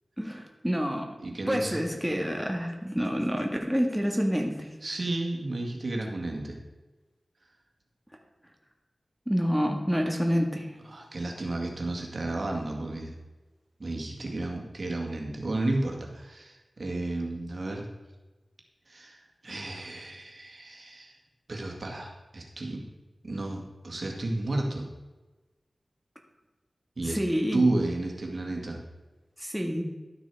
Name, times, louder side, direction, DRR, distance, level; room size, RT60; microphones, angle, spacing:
voice 1, 0.2-1.1 1.5-4.8 9.3-10.7 27.0-27.7 29.4-29.8, equal, 5° right, 2 dB, 1.7 m, -28 dB
voice 2, 1.2-1.8 4.8-6.6 10.8-13.2 13.8-17.9 18.9-21.2 21.5-22.8 23.2-24.9 27.0-27.2 27.5-28.8, right 2 dB, 60° right, 1 dB, 2.0 m, -32 dB
12.5 x 6.1 x 4.7 m, 1.2 s
cardioid pair, 40°, 0 cm